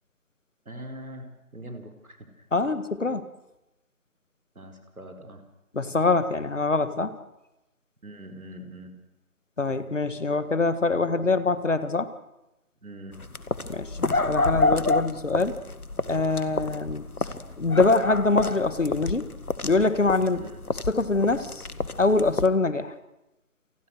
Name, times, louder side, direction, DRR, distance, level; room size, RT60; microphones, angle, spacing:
voice 1, 0.6-2.7 4.5-5.4 8.0-8.9 12.8-13.2 20.3-20.6, right 1 dB, 70° right, 6 dB, 4.9 m, -43 dB
voice 2, 2.5-3.2 5.7-7.2 9.6-12.1 13.7-15.6 16.1-17.0 17.6-19.3 19.6-20.4 20.9-21.7 22.0-22.9, left 3 dB, 55° left, 13 dB, 1.8 m, -24 dB
sound 1, 13.1-22.5, left 2 dB, 75° left, 1.8 m, -28 dB
29.0 x 19.5 x 6.5 m, 0.93 s
figure-of-eight pair, 165°, 45 cm